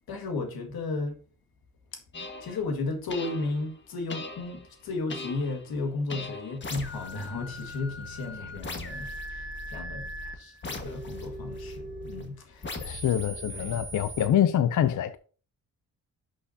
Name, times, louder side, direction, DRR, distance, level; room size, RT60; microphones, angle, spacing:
voice 1, 0.1-1.2 1.9-2.0 2.4-10.1 10.4-13.0 13.5-13.8, left 3 dB, 80° left, 2.0 m, -34 dB
sound 1, 2.1-2.6 3.1-3.7 4.1-4.7 5.1-5.7 6.1-12.2 12.6-14.3, left 1 dB, 30° left, 1.6 m, -39 dB
voice 2, 12.8-15.2, left 10 dB, 55° left, 0.5 m, -25 dB
11.5 x 6.2 x 2.8 m
cardioid pair, 125°, 36 cm